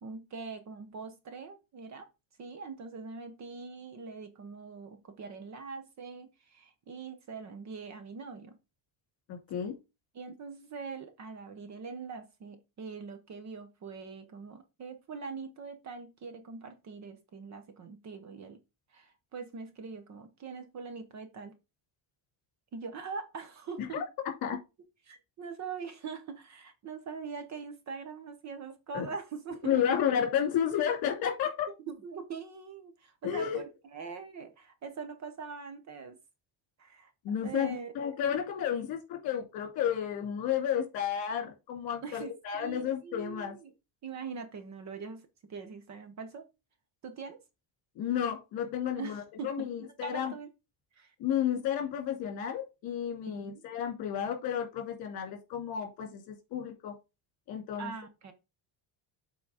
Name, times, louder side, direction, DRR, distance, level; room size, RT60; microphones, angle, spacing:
voice 1, 0.0-2.1 2.4-8.6 10.1-18.6 18.9-21.5 22.7-24.1 25.0-30.0 31.9-36.2 36.8-37.9 42.0-43.7 44.0-46.4 47.0-47.4 49.0-50.5 51.0-51.1 53.3-53.6 57.8-58.3, right 5 dB, 35° right, 0.9 m, -43 dB
voice 2, 9.3-9.7 23.9-24.0 24.4-24.6 28.9-29.1 29.6-31.7 33.2-33.6 37.2-43.6 48.0-50.3 51.2-56.9 57.5-57.9, left 9 dB, 50° left, 2.5 m, -32 dB
7.5 x 4.0 x 4.9 m
cardioid pair, 180°, 49 cm